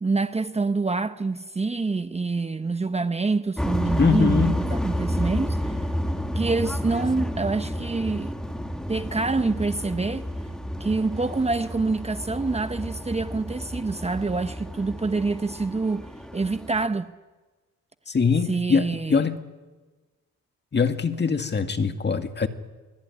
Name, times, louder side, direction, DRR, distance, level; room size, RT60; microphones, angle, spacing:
voice 1, 0.0-5.8 6.3-8.3 8.9-10.3 10.8-16.1 16.3-17.1 18.5-19.3, right 3 dB, 20° right, 1.0 m, -26 dB
sound 1, 3.6-16.8, equal, ahead, 2.3 m, -30 dB
voice 2, 4.0-4.6 18.1-19.4 20.7-22.5, left 5 dB, 35° left, 2.1 m, -23 dB
25.0 x 23.5 x 9.7 m
cardioid pair, 95°, 32 cm